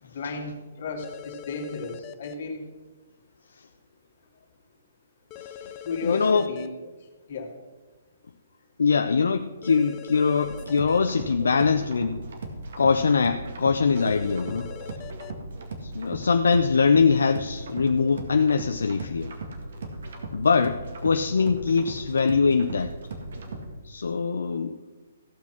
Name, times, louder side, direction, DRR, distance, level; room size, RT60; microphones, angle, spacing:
voice 1, 0.0-2.7 5.8-6.7 7.0-7.6, left 4 dB, 55° left, 3 dB, 2.2 m, -33 dB
sound 1, 1.0-2.3 5.3-6.7 9.6-11.0 13.9-15.3, left 10 dB, 25° left, 0.6 m, -42 dB
voice 2, 5.4-5.7 6.0-6.5 8.8-12.2 12.8-14.7 15.8-19.4 20.3-22.9 23.8-24.8, left 5 dB, 75° left, 7 dB, 0.6 m, -23 dB
sound 2, 10.4-23.7, right 2 dB, 65° right, 2.0 m, -37 dB
15.5 x 5.9 x 5.9 m, 1.2 s
figure-of-eight pair, 135°, 0 cm